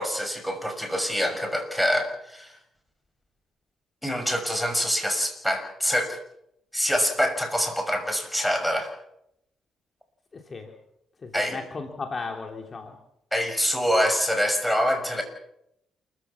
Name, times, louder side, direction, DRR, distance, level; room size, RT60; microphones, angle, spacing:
voice 1, 0.0-2.5 4.0-6.2 6.7-8.9 11.3-11.6 13.3-15.2, equal, ahead, 6 dB, 6.3 m, -25 dB
voice 2, 10.3-10.7 11.2-13.0, left 4 dB, 35° left, 3 dB, 3.1 m, -35 dB
28.5 x 14.5 x 7.3 m, 0.78 s
cardioid pair, 90°, 0 cm